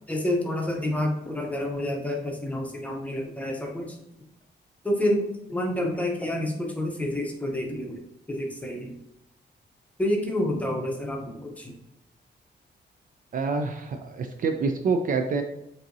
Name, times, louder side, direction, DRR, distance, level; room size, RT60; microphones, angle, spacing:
voice 1, 0.1-4.0 4.8-8.0 8.3-8.9 10.0-11.7, left 1 dB, 10° left, 0 dB, 0.7 m, -28 dB
voice 2, 13.3-15.4, right 4 dB, 50° right, 6 dB, 0.4 m, -26 dB
7.4 x 2.7 x 2.6 m, 0.83 s
wide cardioid pair, 165°, 18 cm